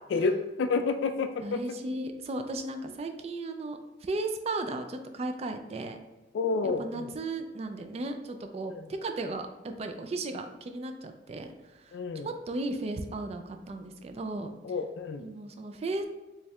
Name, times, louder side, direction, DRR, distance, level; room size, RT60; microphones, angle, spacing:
voice 1, 0.1-1.6 6.3-7.1 8.7-8.8 11.9-12.3 14.6-15.2, left 4 dB, 75° left, 7 dB, 0.3 m, -29 dB
voice 2, 1.4-6.0 6.6-14.5 15.2-16.0, right 2 dB, 35° right, 6 dB, 0.3 m, -35 dB
4.3 x 3.2 x 2.3 m, 1.1 s
head